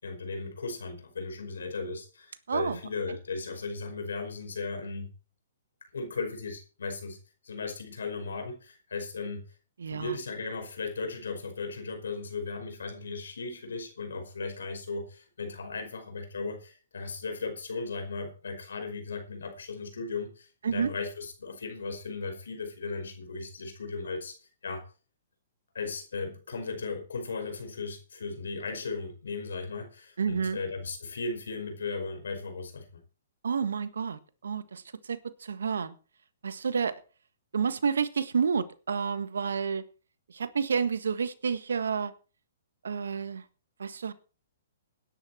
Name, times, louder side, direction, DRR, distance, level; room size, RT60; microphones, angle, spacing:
voice 1, 0.0-5.1 5.9-7.2 7.4-9.4 9.9-24.4 24.6-24.8 25.7-33.0, left 4 dB, 80° left, 6 dB, 5.3 m, -36 dB
voice 2, 2.5-2.8 9.8-10.2 20.6-20.9 30.2-30.6 33.4-35.9 36.4-36.9 37.5-39.8 40.3-42.1 42.8-43.4 43.8-44.1, right 6 dB, 75° right, 13 dB, 1.6 m, -30 dB
17.5 x 10.5 x 4.4 m, 0.36 s
hypercardioid pair, 130°, 0 cm